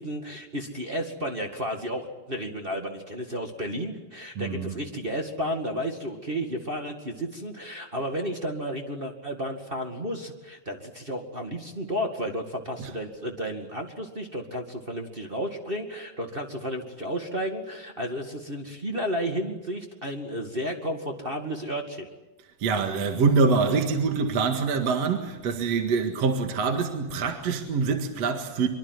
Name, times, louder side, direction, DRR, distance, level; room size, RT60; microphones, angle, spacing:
voice 1, 0.0-22.1, equal, 20° right, 1.4 m, -32 dB
voice 2, 4.4-4.8 12.8-12.9 22.6-28.7, right 4 dB, 50° right, 2.6 m, -25 dB
25.0 x 23.5 x 9.6 m
omnidirectional pair, 4.3 m